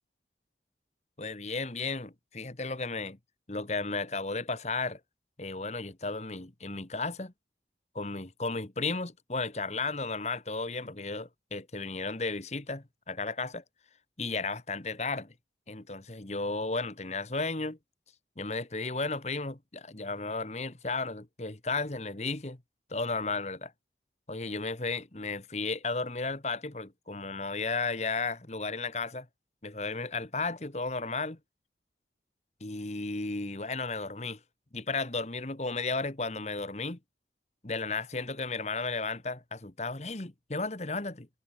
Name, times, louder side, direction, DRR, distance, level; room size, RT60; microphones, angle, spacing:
voice 1, 1.2-3.2 3.5-5.0 5.4-7.3 7.9-13.6 14.2-15.3 15.7-17.8 18.4-22.6 22.9-23.7 24.3-29.3 29.6-31.4 32.6-34.4 34.7-37.0 37.6-41.3, left 3 dB, 40° left, 1.4 m, -34 dB
head